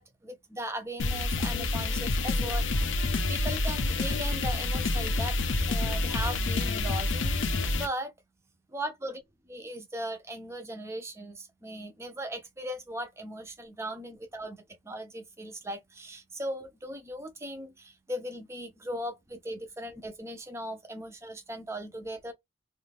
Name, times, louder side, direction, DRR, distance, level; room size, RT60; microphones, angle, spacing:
voice 1, 0.0-2.6 3.3-5.4 5.7-8.1 8.7-9.2 9.5-22.3, right 1 dB, 15° right, 0.5 m, -38 dB
sound 1, 1.0-7.9, left 2 dB, 75° left, 0.5 m, -28 dB
2.5 x 2.4 x 3.3 m
head